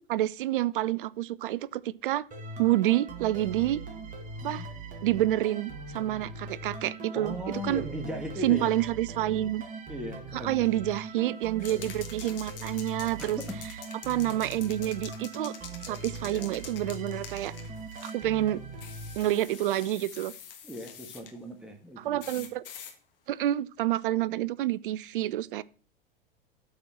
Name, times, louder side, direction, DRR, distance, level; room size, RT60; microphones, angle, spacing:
voice 1, 0.0-2.3 2.6-3.8 4.4-4.6 5.0-7.8 8.4-9.6 10.4-13.4 14.0-15.5 15.9-17.5 18.0-18.6 19.2-20.3 22.0-22.6 23.3-25.6, right 14 dB, 60° right, 0.5 m, -28 dB
sound 1, 2.3-19.8, right 2 dB, 25° right, 2.3 m, -41 dB
voice 2, 7.1-8.7 9.9-11.0 11.7-11.9 13.2-13.3 16.2-16.5 20.6-22.5, left 1 dB, 5° right, 1.5 m, -38 dB
sound 2, 11.6-18.2 18.8-21.3 22.2-22.9, left 8 dB, 65° left, 1.5 m, -46 dB
8.6 x 4.3 x 7.2 m
figure-of-eight pair, 90°, 29 cm